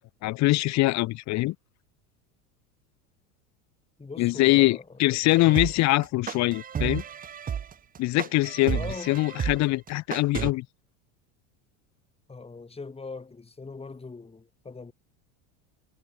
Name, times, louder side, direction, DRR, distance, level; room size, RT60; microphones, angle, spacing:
voice 1, 0.2-1.5 4.2-7.0 8.0-8.8 9.1-10.7, left 19 dB, 40° left, 0.8 m, -23 dB
voice 2, 4.0-5.2 8.7-9.2 12.3-14.9, left 4 dB, 15° left, 5.6 m, -41 dB
sound 1, 5.3-10.5, right 8 dB, 20° right, 0.8 m, -32 dB
supercardioid pair, 115°, 41 cm